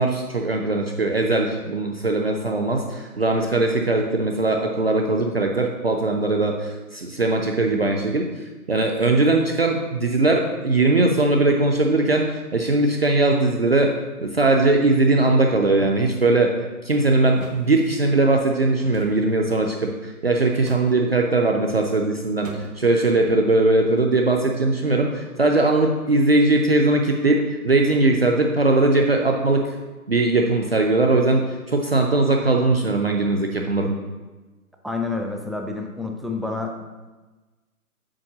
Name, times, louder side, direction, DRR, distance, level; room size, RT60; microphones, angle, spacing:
voice 1, 0.0-8.3 8.7-16.5 16.8-29.6 30.1-33.9, right 2 dB, 40° right, 2 dB, 0.6 m, -20 dB
sound 1, 17.4-17.7 18.9-19.2 20.6-20.9 22.4-22.9, right 2 dB, 60° right, 1.5 m, -39 dB
voice 2, 34.8-36.8, left 3 dB, ahead, 2 dB, 0.4 m, -28 dB
7.5 x 4.6 x 6.0 m, 1.2 s
hypercardioid pair, 170°, 45 cm